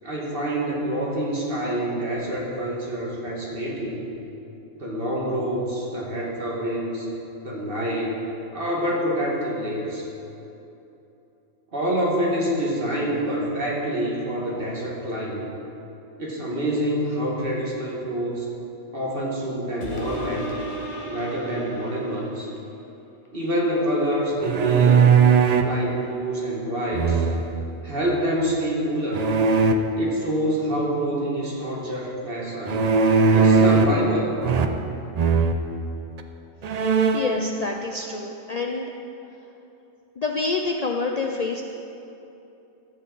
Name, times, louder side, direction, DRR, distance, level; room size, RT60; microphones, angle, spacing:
voice 1, 0.0-4.0 4.7-7.1 7.4-10.1 11.7-15.5 16.2-18.5 18.9-20.4 21.1-22.5 23.3-25.1 25.6-27.3 27.8-29.3 30.0-32.8 33.3-34.4, equal, 45° right, -3 dB, 1.8 m, -26 dB
sound 1, 19.8-22.7 23.3-23.4, right 1 dB, 25° left, 1.1 m, -36 dB
sound 2, 24.4-25.8 26.9-27.6 29.1-29.7 32.7-34.0 34.4-34.9 35.2-35.6 36.2-36.3 36.6-37.4, right 5 dB, 75° right, 0.3 m, -19 dB
voice 2, 36.7-38.9 40.2-41.6, left 3 dB, 75° left, 2 dB, 0.3 m, -27 dB
13.0 x 7.5 x 4.0 m, 2.9 s
omnidirectional pair, 1.3 m